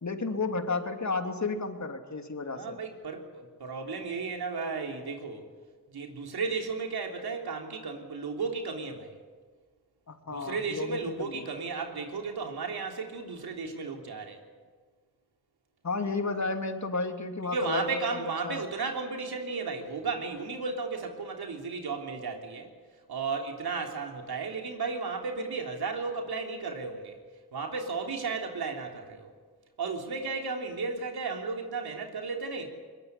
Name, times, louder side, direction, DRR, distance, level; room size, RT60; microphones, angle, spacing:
voice 1, 0.0-2.8 10.1-11.5 15.8-18.6, left 3 dB, 50° left, 5 dB, 3.2 m, -32 dB
voice 2, 2.6-5.5 5.9-9.2 10.3-14.4 17.5-22.7 23.1-27.2 27.5-29.3 29.8-32.7, right 4 dB, 85° right, 3 dB, 3.4 m, -34 dB
22.5 x 20.5 x 9.9 m, 1.5 s
cardioid pair, 55°, 37 cm